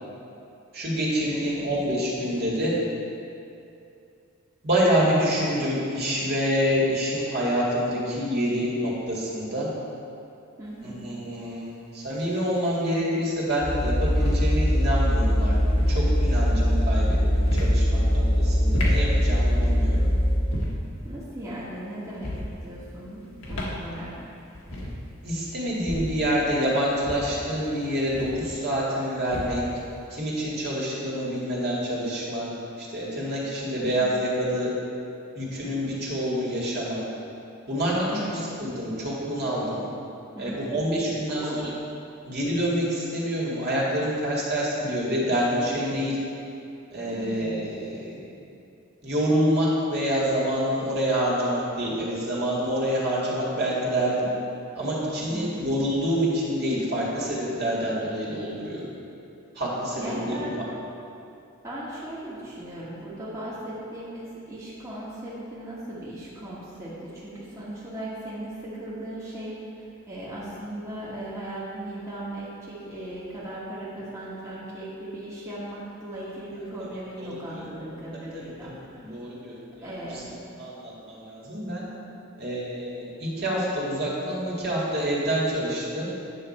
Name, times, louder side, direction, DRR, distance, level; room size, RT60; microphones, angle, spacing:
voice 1, 0.7-2.8 4.6-9.7 10.8-15.6 15.9-20.1 25.2-29.6 30.1-32.5 32.8-34.7 35.4-37.0 37.7-38.1 38.6-39.8 40.4-41.7 42.2-46.2 46.9-48.2 49.0-54.3 54.8-58.8 59.6-60.6 77.2-77.6 78.1-80.2 80.6-81.9 82.4-86.0, equal, 55° right, -6 dB, 2.1 m, -27 dB
voice 2, 1.3-1.8 10.6-11.1 21.0-24.1 33.7-34.2 38.1-38.5 40.3-40.8 41.3-41.6 47.1-47.7 55.3-55.7 60.0-60.6 61.6-79.1 79.8-80.3, right 1 dB, 15° right, -9 dB, 1.5 m, -37 dB
sound 1, 10.7-10.8 12.2-12.7 13.9-14.5 15.5-16.0 17.3-17.8 18.5-19.1 20.4-20.9 22.1-22.5 23.3-23.8 24.1-24.2 24.5-25.0 25.7-26.2 26.9-28.5 29.2-29.7, left 1 dB, 75° left, 1.5 m, -33 dB
sound 2, 13.6-20.5, equal, 25° left, 1.1 m, -22 dB
9.8 x 6.6 x 4.3 m, 2.7 s
head